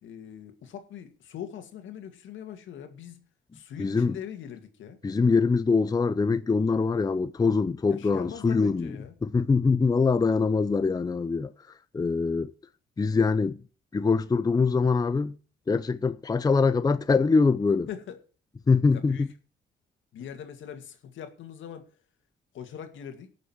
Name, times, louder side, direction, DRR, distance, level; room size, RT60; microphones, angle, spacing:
voice 1, 0.0-3.2 3.5-5.0 7.9-9.2 17.9-18.2 18.9-19.3 20.1-21.9 22.5-23.3, left 9 dB, 75° left, 2.1 m, -41 dB
voice 2, 3.8-4.2 5.0-8.9 9.2-11.5 11.9-12.5 13.0-13.6 13.9-15.3 15.7-17.9 18.7-19.3, left 4 dB, 20° left, 0.5 m, -23 dB
17.5 x 6.6 x 4.6 m
cardioid pair, 90°, 20 cm